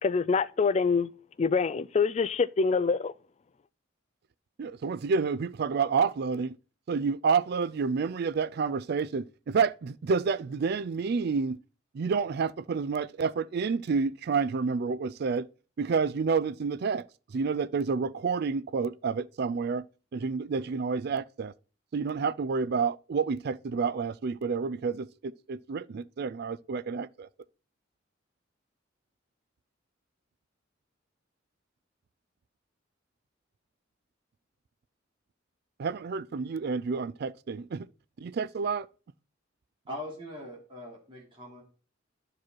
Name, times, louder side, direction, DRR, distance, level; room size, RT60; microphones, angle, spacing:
voice 1, 0.0-1.1 1.4-3.1, left 5 dB, 35° left, 0.3 m, -25 dB
voice 2, 4.6-6.6 6.9-11.6 11.9-15.5 15.8-17.0 17.3-19.9 20.1-21.5 21.9-27.3 35.8-37.9 38.2-38.9, right 5 dB, 55° right, 0.4 m, -29 dB
voice 3, 39.9-41.6, left 1 dB, 25° right, 3.2 m, -41 dB
11.5 x 4.9 x 4.5 m
head